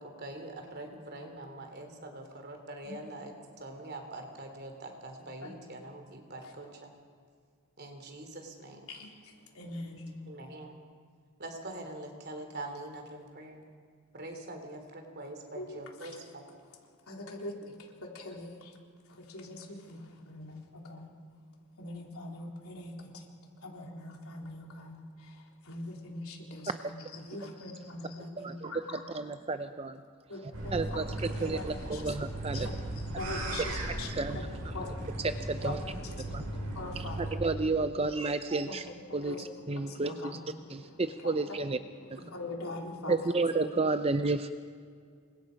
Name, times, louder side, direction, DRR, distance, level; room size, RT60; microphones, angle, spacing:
voice 1, 0.0-3.3 3.6-6.9 7.8-8.9 10.3-10.8 11.4-13.7 14.1-16.4, right 2 dB, 45° right, 4 dB, 3.4 m, -44 dB
voice 2, 8.9-10.1 15.5-16.2 17.1-17.7 18.0-18.7 19.1-21.1 21.8-23.2 23.6-29.0 30.3-32.2 32.5-35.3 35.6-37.4 38.7-43.3 43.9-44.0, left 2 dB, 70° left, 0 dB, 4.0 m, -43 dB
voice 3, 28.4-30.0 30.7-32.7 33.6-33.7 34.1-34.4 35.2-35.8 36.3-36.4 37.0-38.8 39.1-40.4 40.7-41.8 42.1-42.2 43.1-44.5, right 3 dB, 25° right, 9 dB, 0.6 m, -31 dB
sound 1, 30.5-37.4, right 1 dB, 70° right, 6.6 m, -37 dB
28.5 x 24.5 x 5.3 m, 2.1 s
head